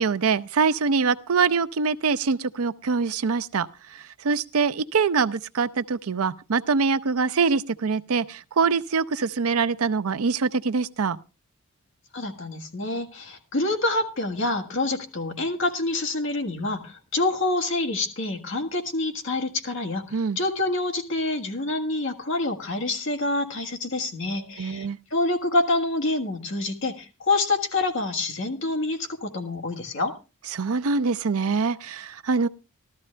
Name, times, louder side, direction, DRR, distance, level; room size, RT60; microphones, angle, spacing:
voice 1, 0.0-11.2 20.1-20.4 24.6-25.0 30.5-32.5, right 5 dB, 85° right, 0.6 m, -24 dB
voice 2, 12.1-30.1, left 2 dB, 60° left, 1.6 m, -27 dB
14.0 x 13.0 x 3.3 m
head